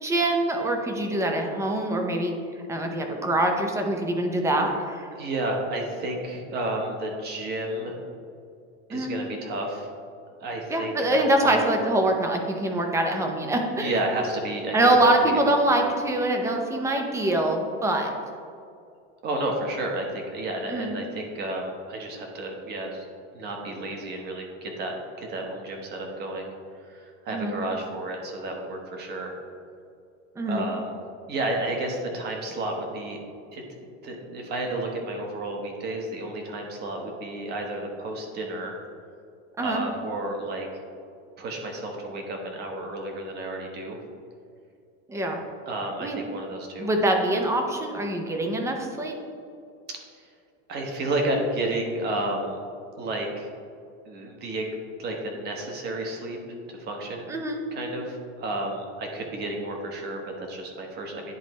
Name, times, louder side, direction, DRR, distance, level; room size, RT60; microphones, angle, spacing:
voice 1, 0.0-2.3 2.7-5.1 8.9-9.1 10.7-13.9 14.7-18.1 20.7-20.9 27.3-27.6 30.4-30.6 39.6-39.8 45.1-45.4 46.0-46.2 46.8-49.1 57.3-57.6, right 1 dB, 10° right, 3 dB, 0.5 m, -24 dB
voice 2, 5.1-7.9 8.9-9.9 10.3-11.7 13.8-15.7 19.2-23.0 23.3-26.5 26.8-29.4 30.4-30.9 31.3-33.2 33.5-38.8 39.6-40.7 41.4-44.0 45.7-46.9 49.9-50.2 50.7-52.6 53.0-53.5 54.0-54.7 55.0-56.4 56.7-57.3 57.7-61.3, right 1 dB, 30° right, 2 dB, 1.1 m, -31 dB
10.5 x 4.0 x 3.1 m, 2.4 s
supercardioid pair, 155°, 33 cm